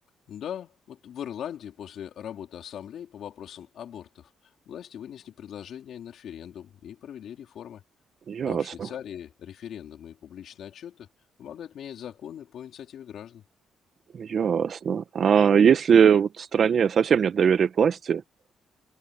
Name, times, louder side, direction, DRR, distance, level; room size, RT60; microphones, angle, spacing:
voice 1, 0.3-7.8 8.4-11.1 11.4-13.4, left 9 dB, 70° left, 4.1 m, -40 dB
voice 2, 8.3-8.9 14.1-18.2, right 7 dB, 55° right, 1.0 m, -21 dB
cardioid pair, 90°, 0 cm